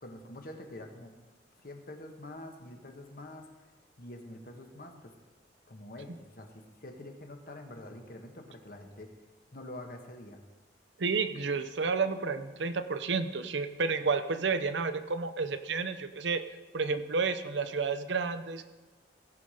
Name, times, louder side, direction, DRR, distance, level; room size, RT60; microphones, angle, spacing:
voice 1, 0.0-1.1 1.6-3.7 4.0-5.1 5.7-9.1 9.5-10.4, left 1 dB, 50° left, 4 dB, 1.3 m, -46 dB
voice 2, 11.0-16.4 16.7-18.6, right 4 dB, 75° right, 9 dB, 0.7 m, -31 dB
16.5 x 5.8 x 4.9 m, 1.2 s
head